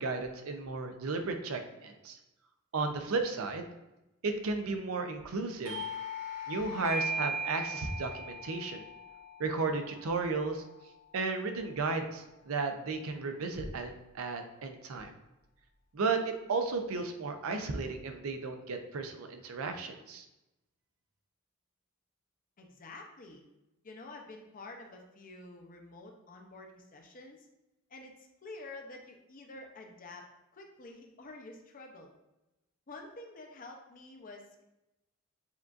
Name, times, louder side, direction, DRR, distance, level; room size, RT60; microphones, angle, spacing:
voice 1, 0.0-2.2 2.7-3.7 4.2-5.8 6.5-8.8 9.4-10.6 11.1-15.1 15.9-20.3, right 4 dB, 70° right, 6 dB, 0.5 m, -34 dB
Doorbell, 5.6-10.9, right 1 dB, 15° right, 1.0 m, -39 dB
voice 2, 22.6-23.4 23.8-27.5 27.9-30.3 30.5-32.1 32.9-34.6, left 2 dB, 40° left, 2 dB, 0.6 m, -49 dB
7.0 x 2.5 x 2.4 m, 0.95 s
head